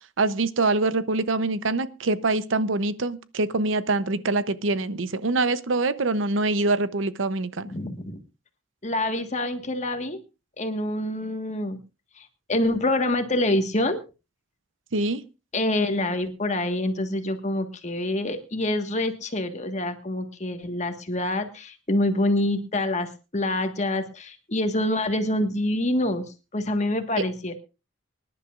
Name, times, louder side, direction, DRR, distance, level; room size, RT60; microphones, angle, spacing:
voice 1, 0.2-7.7 14.9-15.2, right 3 dB, 75° right, 14 dB, 0.8 m, -24 dB
voice 2, 7.6-8.2 8.8-10.2 10.6-11.8 12.2-14.0 15.5-26.2 26.5-27.5, left 1 dB, 35° left, 7 dB, 1.5 m, -26 dB
24.5 x 11.0 x 2.5 m, 0.29 s
head